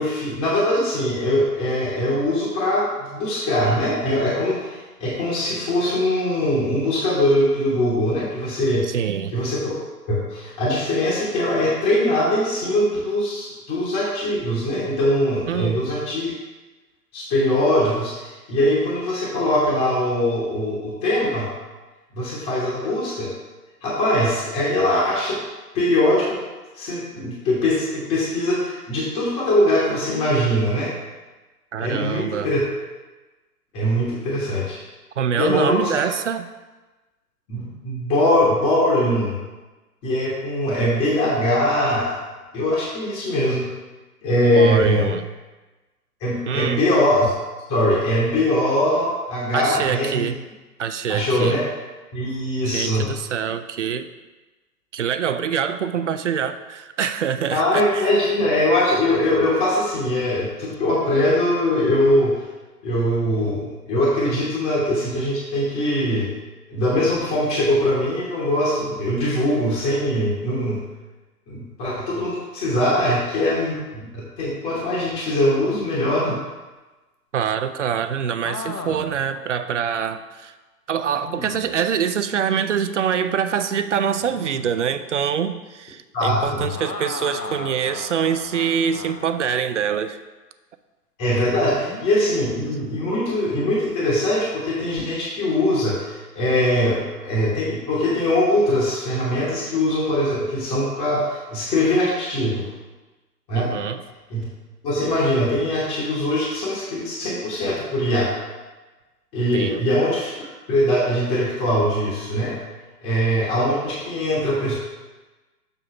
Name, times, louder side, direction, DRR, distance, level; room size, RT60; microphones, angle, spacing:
voice 1, 0.0-8.9 9.3-9.7 10.1-16.3 17.1-21.5 22.1-23.3 23.8-25.4 25.7-26.4 26.7-30.9 31.8-32.6 33.7-34.8 35.3-35.9 37.5-39.4 40.0-42.2 42.5-43.7 44.2-45.1 46.2-47.3 47.7-50.3 51.1-51.6 52.1-53.1 57.5-62.4 62.8-66.3 66.7-70.8 71.5-76.4 86.1-86.6 91.2-102.6 103.5-103.7 104.3-104.4 104.8-108.3 109.3-110.3 110.7-112.6 113.0-114.7, left 1 dB, 15° left, -7 dB, 0.9 m, -22 dB
voice 2, 8.9-9.3 15.5-15.8 31.7-32.5 35.2-36.5 44.5-45.2 46.5-46.8 49.5-50.4 50.8-51.6 52.7-54.1 54.9-58.1 77.3-80.5 80.9-90.2 103.6-104.0 109.5-109.8, right 8 dB, 50° right, 11 dB, 0.5 m, -25 dB
sound 1, 75.8-76.4 78.4-79.3 79.8-79.9 81.3-81.8 84.2-84.8 86.6-89.5 91.7-92.1, left 3 dB, 90° left, 0.9 m, -36 dB
6.8 x 3.7 x 5.7 m, 1.2 s
figure-of-eight pair, 125°, 48 cm